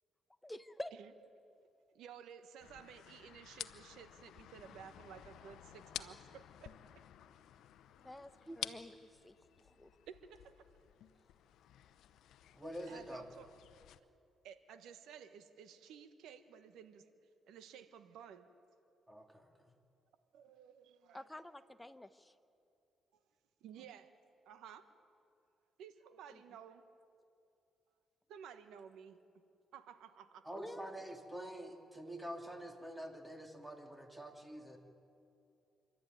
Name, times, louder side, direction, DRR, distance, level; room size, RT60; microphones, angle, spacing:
voice 1, 0.4-0.9 8.0-10.0 21.1-22.4 26.3-26.4 30.5-30.9, left 1 dB, 10° left, 10 dB, 1.0 m, -49 dB
voice 2, 1.9-6.7 10.1-10.5 12.9-13.5 14.4-17.1 17.5-18.5 20.3-21.2 23.6-24.1 24.4-24.9 25.8-26.8 28.3-29.4 29.7-30.5, right 8 dB, 85° right, 10 dB, 1.3 m, -54 dB
sound 1, 2.6-14.0, left 11 dB, 80° left, 0.7 m, -52 dB
voice 3, 12.5-13.3 19.1-19.5 30.4-34.8, right 1 dB, 10° right, 3 dB, 2.7 m, -47 dB
26.5 x 12.5 x 9.2 m, 2.6 s
cardioid pair, 90°, 0 cm